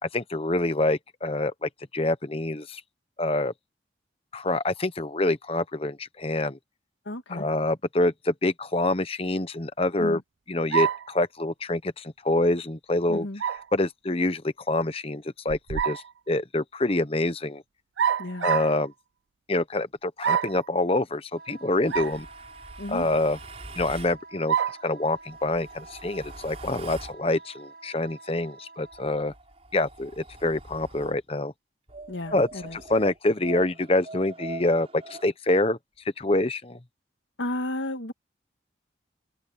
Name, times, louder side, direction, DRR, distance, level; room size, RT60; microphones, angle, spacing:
voice 1, 0.0-2.8 3.2-3.5 4.3-6.6 7.3-10.2 10.5-13.3 13.7-17.6 18.4-18.9 19.5-22.3 22.9-23.4 23.7-24.6 24.8-29.3 29.7-31.5 32.3-35.8 36.2-36.8, left 2 dB, 30° left, 1.0 m, -26 dB
voice 2, 7.1-7.5 10.0-10.2 13.1-13.4 18.2-18.5 22.8-23.1 32.1-32.8 37.4-38.1, left 1 dB, 85° left, 1.9 m, -33 dB
sound 1, 10.7-11.1 13.4-13.7 15.5-16.1 18.0-18.8 20.2-20.6 21.9-22.2 22.7-22.8 24.5-24.8, right 8 dB, 80° right, 0.4 m, -26 dB
Wind instrument woodwind instrument, 21.3-29.2, right 3 dB, 50° right, 6.5 m, -48 dB
sound 2, 21.8-24.2 25.2-27.2 28.8-31.2 31.9-35.3, right 2 dB, 35° right, 4.8 m, -43 dB
head